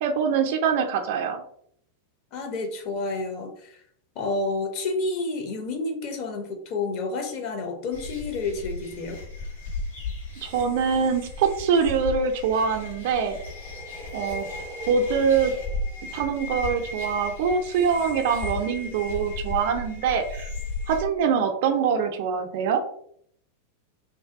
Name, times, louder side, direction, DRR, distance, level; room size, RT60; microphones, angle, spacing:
voice 1, 0.0-1.4 10.4-13.4 14.1-14.5 14.9-15.5 16.1-20.5 20.9-22.8, right 6 dB, 50° right, 5 dB, 0.3 m, -24 dB
voice 2, 2.3-3.8 4.2-9.2, left 3 dB, 40° left, 4 dB, 0.5 m, -30 dB
sound 1, 7.9-21.0, left 2 dB, 65° left, 1.3 m, -35 dB
2.6 x 2.2 x 2.4 m, 0.65 s
figure-of-eight pair, 90°, 0 cm